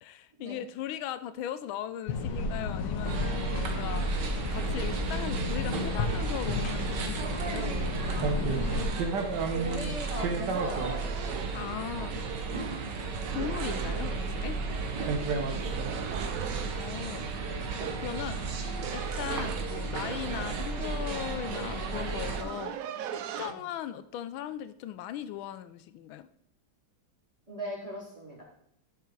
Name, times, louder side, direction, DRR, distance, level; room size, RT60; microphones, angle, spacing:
voice 1, 0.0-4.1 4.5-7.8 11.5-12.2 12.9-14.6 16.7-17.2 18.0-18.5 18.9-22.8 23.1-26.3, left 11 dB, 85° left, 13 dB, 1.4 m, -38 dB
sound 1, 2.1-8.9, left 3 dB, 70° left, 1.9 m, -33 dB
sound 2, 3.0-22.4, right 4 dB, 65° right, 1.7 m, -33 dB
voice 2, 8.4-8.9 9.4-11.1 15.2-16.0 23.4-23.6 27.5-28.4, right 1 dB, 15° right, -5 dB, 3.8 m, -39 dB
sound 3, 10.4-12.6 13.2-14.3 15.7-16.9 18.4-20.7 21.6-21.7 22.0-23.5, right 10 dB, 90° right, 0.7 m, -40 dB
11.0 x 6.7 x 4.6 m, 0.72 s
omnidirectional pair, 2.1 m